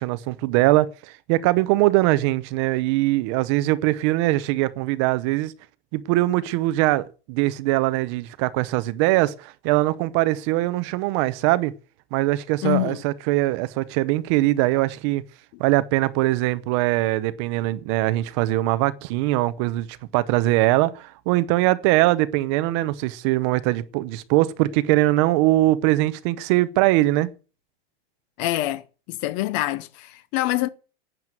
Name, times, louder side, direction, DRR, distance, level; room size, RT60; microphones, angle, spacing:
voice 1, 0.0-5.5 5.9-11.7 12.1-15.2 15.6-19.9 20.1-27.3, right 17 dB, 30° right, 0.7 m, -21 dB
voice 2, 12.6-13.0 28.4-28.8 29.1-30.7, left 16 dB, 25° left, 0.7 m, -25 dB
12.0 x 9.2 x 9.1 m
supercardioid pair, 170°, 30 cm